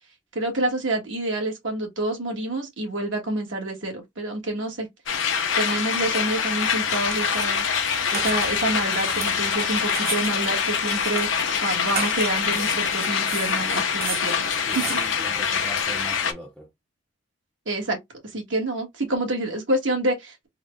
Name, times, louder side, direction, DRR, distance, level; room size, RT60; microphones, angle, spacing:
voice 1, 0.3-4.9 5.6-7.6 8.1-11.3 11.6-14.5 14.7-15.0 17.6-18.0 18.3-20.5, right 2 dB, 75° right, 1.5 m, -27 dB
sound 1, 5.1-16.3, left 6 dB, 85° left, 0.8 m, -25 dB
sound 2, 6.6-15.8, right 5 dB, 50° right, 0.9 m, -37 dB
Dog, 7.0-13.0, left 5 dB, 65° left, 1.0 m, -34 dB
voice 2, 14.7-16.7, equal, ahead, 0.5 m, -40 dB
3.7 x 2.3 x 3.1 m
head